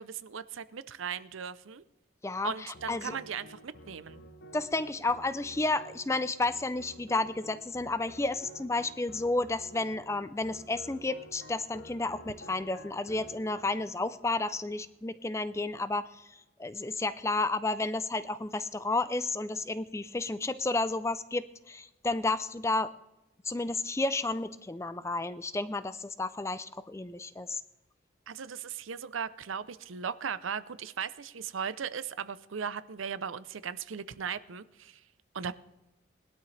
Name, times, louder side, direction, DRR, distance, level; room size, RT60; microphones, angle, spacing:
voice 1, 0.0-1.8 2.4-4.2 28.3-35.0 35.3-35.5, right 7 dB, 85° right, 15 dB, 0.6 m, -37 dB
voice 2, 2.2-3.2 4.5-22.9 23.5-27.6, left 2 dB, 15° left, 14 dB, 0.4 m, -32 dB
sound 1, 2.7-15.2, right 1 dB, 60° left, 0.8 m, -51 dB
20.0 x 12.0 x 3.3 m, 0.96 s
head